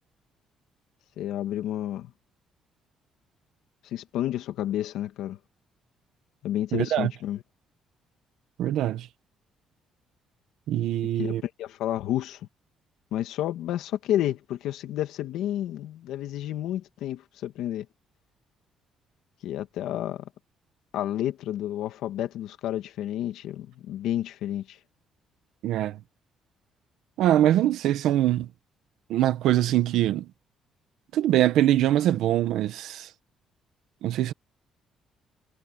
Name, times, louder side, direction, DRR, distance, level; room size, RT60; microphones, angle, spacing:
voice 1, 1.2-2.1 3.8-5.4 6.4-7.4 11.2-12.4 13.1-17.9 19.4-20.3 20.9-24.8, left 12 dB, 80° left, 1.9 m, -30 dB
voice 2, 6.7-7.1 8.6-9.1 10.7-11.4 25.6-26.0 27.2-28.5 29.1-30.3 31.1-33.1 34.0-34.3, right 13 dB, 75° right, 1.6 m, -23 dB
cardioid pair, 180°, 0 cm